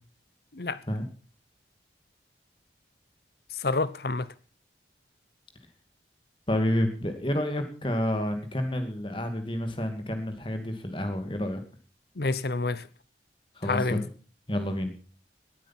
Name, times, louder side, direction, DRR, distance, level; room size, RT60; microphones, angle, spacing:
voice 1, 0.5-0.8 3.5-4.3 12.2-12.9 13.6-14.0, left 3 dB, 60° left, 0.9 m, -28 dB
voice 2, 6.5-11.6 13.6-14.1 14.5-14.9, left 1 dB, 30° left, 2.4 m, -29 dB
18.0 x 8.9 x 5.9 m
head